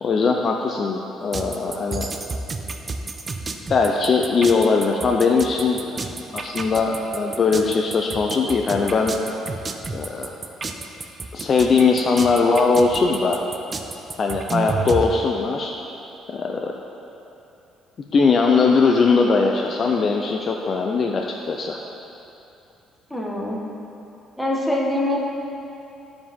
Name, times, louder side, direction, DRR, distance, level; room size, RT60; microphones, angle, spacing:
voice 1, 0.0-2.1 3.7-9.1 9.9-10.4 11.3-13.4 14.2-15.7 16.3-16.7 18.1-21.8, left 4 dB, 40° left, 1 dB, 0.5 m, -20 dB
sound 1, 1.3-15.0, right 4 dB, 30° right, 0.5 m, -30 dB
voice 2, 23.1-23.6 24.4-25.2, left 1 dB, 5° left, -3 dB, 1.3 m, -23 dB
14.5 x 4.9 x 3.6 m, 2.8 s
cardioid pair, 120°, 0 cm